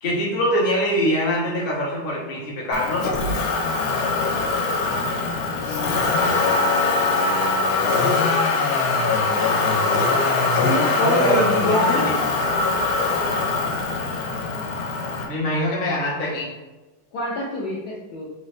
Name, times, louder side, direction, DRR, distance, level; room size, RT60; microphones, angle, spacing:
voice 1, 0.0-3.1 11.0-12.2 15.3-16.5, equal, 55° left, -4 dB, 0.6 m, -23 dB
Motor vehicle (road), 2.7-15.2, left 3 dB, 85° left, 1.5 m, -22 dB
voice 2, 5.5-6.3 10.6-12.1 17.1-18.3, left 1 dB, 70° left, -5 dB, 0.9 m, -25 dB
3.9 x 2.7 x 3.2 m, 1.2 s
omnidirectional pair, 2.3 m